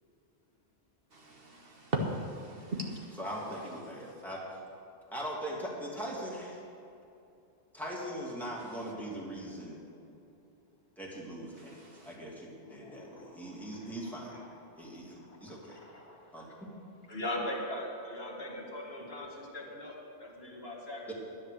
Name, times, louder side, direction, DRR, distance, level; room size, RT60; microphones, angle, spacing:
voice 1, 1.1-4.2 8.6-8.9 11.5-12.2, right 1 dB, 55° right, 1 dB, 1.4 m, -39 dB
voice 2, 3.2-4.4 5.1-6.6 7.7-9.8 11.0-14.4 14.7-15.8 16.3-16.5 21.1-21.2, equal, ahead, -5 dB, 2.6 m, -40 dB
voice 3, 12.6-14.6 15.1-16.2 17.1-21.1, left 1 dB, 60° left, -2 dB, 2.3 m, -41 dB
11.0 x 10.5 x 6.6 m, 2.7 s
omnidirectional pair, 1.2 m